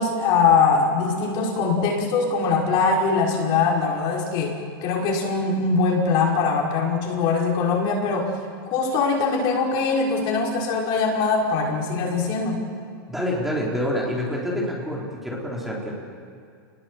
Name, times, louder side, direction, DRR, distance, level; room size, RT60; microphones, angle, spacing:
voice 1, 0.0-8.3 8.7-12.6, left 4 dB, 40° left, -1 dB, 5.6 m, -22 dB
voice 2, 13.1-15.9, equal, ahead, -4 dB, 4.2 m, -27 dB
28.5 x 21.0 x 8.0 m, 2.4 s
supercardioid pair, 145°, 12 cm